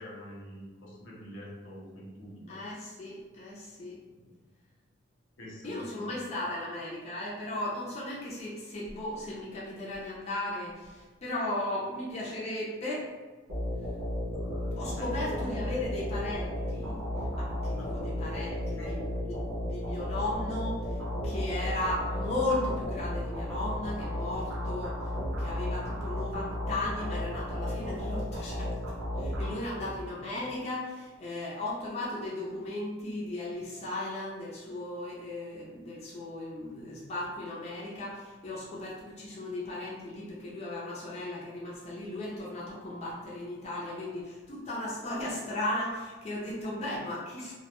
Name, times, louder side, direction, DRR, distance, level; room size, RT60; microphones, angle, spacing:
voice 1, 0.0-2.6 4.2-4.3 5.4-6.3 14.2-15.5 17.8-17.9 18.5-18.9 29.5-29.9, equal, 80° left, -4 dB, 0.7 m, -46 dB
voice 2, 2.5-4.0 5.6-13.1 14.8-17.0 17.3-21.0 21.2-25.0 25.4-28.7 29.2-47.5, left 1 dB, 35° left, -6 dB, 0.4 m, -36 dB
sound 1, 13.5-30.1, left 1 dB, 75° right, 0.7 m, -34 dB
2.2 x 2.1 x 2.9 m, 1.3 s
head